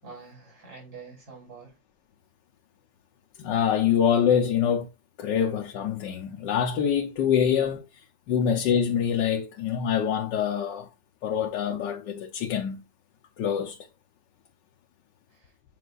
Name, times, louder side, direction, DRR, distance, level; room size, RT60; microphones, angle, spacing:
voice 1, 0.0-1.8 15.3-15.6, right 4 dB, 60° right, 3.9 m, -46 dB
voice 2, 3.4-4.9 5.2-10.9 11.2-12.8 13.4-13.8, left 8 dB, 85° left, 1.4 m, -25 dB
7.9 x 5.1 x 2.4 m
omnidirectional pair, 1.8 m